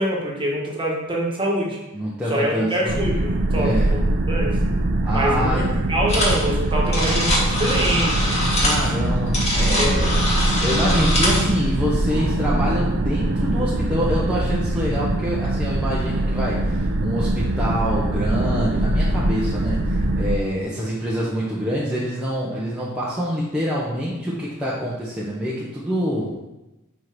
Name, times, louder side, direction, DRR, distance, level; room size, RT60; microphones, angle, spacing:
voice 1, 0.0-1.8 2.3-4.0 4.3-4.6 5.1-5.6 5.9-8.4 8.9-9.0 9.8-10.2, right 1 dB, 25° right, -3 dB, 1.6 m, -25 dB
voice 2, 1.9-2.9 3.5-3.9 5.0-5.8 8.6-10.3 10.6-26.4, equal, 5° right, -8 dB, 1.0 m, -26 dB
sound 1, 2.9-20.4, right 1 dB, 50° right, 0.6 m, -22 dB
sound 2, 6.1-6.4 6.7-11.5, left 1 dB, 30° left, 2.1 m, -23 dB
5.5 x 4.7 x 6.0 m, 1.0 s
head